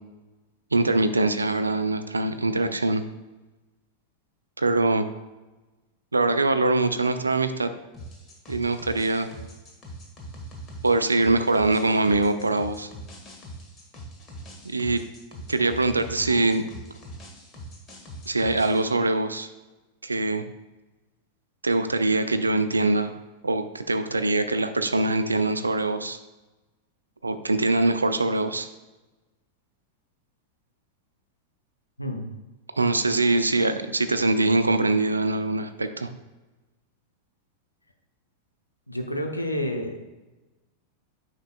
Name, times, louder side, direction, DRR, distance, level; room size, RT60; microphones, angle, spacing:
voice 1, 0.7-3.0 4.6-5.1 6.1-7.7 8.5-9.3 10.8-12.9 14.6-15.0 15.5-16.6 18.3-19.5 20.0-20.4 21.6-23.1 23.4-26.2 27.2-28.7 32.8-36.1, right 2 dB, 80° right, 10 dB, 0.4 m, -23 dB
sound 1, 7.9-18.9, right 1 dB, 25° left, 1.5 m, -42 dB
voice 2, 32.0-32.4 38.9-40.0, equal, 85° left, 3 dB, 0.7 m, -29 dB
9.0 x 5.8 x 2.3 m, 1.1 s
figure-of-eight pair, 90°, 0 cm